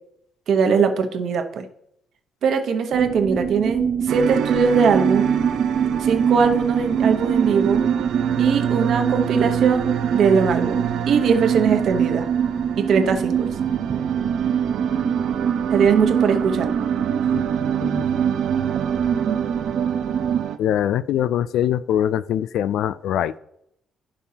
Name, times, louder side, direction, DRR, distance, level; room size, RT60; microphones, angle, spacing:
voice 1, 0.5-1.7 2.4-5.3 6.0-7.8 8.4-10.8 11.1-12.3 12.8-13.5 15.7-16.7 19.2-19.4, right 5 dB, 55° right, 6 dB, 1.0 m, -20 dB
sound 1, 2.9-20.4, right 7 dB, 40° right, 0.5 m, -23 dB
sound 2, 4.1-20.6, right 9 dB, 90° right, 0.7 m, -29 dB
voice 2, 20.6-23.3, left 10 dB, 85° left, 16 dB, 0.3 m, -23 dB
15.5 x 5.4 x 2.8 m, 0.74 s
cardioid pair, 165°, 0 cm